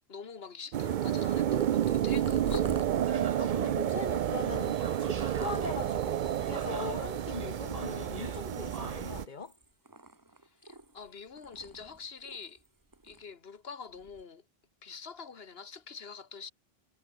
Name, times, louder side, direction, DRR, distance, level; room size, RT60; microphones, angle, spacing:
voice 1, 0.1-2.7 10.6-12.6 13.0-14.4 14.8-16.5, left 5 dB, 75° left, 1.7 m, -46 dB
sound 1, 0.7-9.3, right 11 dB, 60° right, 0.6 m, -30 dB
Purr, 1.3-6.1 6.7-7.1 7.4-8.6 9.0-11.1 11.4-12.7 12.9-13.2 13.9-14.2, right 2 dB, 20° right, 1.3 m, -44 dB
voice 2, 2.9-9.5, left 5 dB, 50° left, 1.4 m, -41 dB
sound 2, 3.0-9.3, right 4 dB, 35° right, 1.2 m, -43 dB
omnidirectional pair, 1.0 m